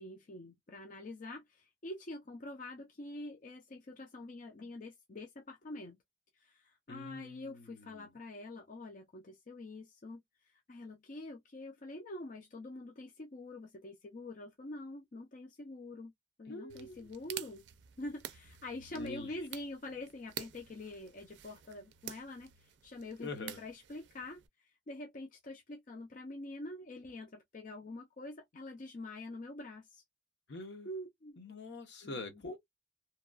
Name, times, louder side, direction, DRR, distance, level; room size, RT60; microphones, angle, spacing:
voice 1, 0.0-6.0 6.4-16.1 16.4-17.6 18.0-30.0 30.8-31.4 32.0-32.4, left 2 dB, 45° left, 0.5 m, -46 dB
voice 2, 6.9-8.1 16.5-17.1 18.9-19.4 23.2-23.6 30.5-30.9 31.4-32.6, left 2 dB, 65° left, 0.8 m, -45 dB
sound 1, 16.7-24.5, right 10 dB, 65° right, 0.4 m, -49 dB
2.9 x 2.2 x 2.3 m
head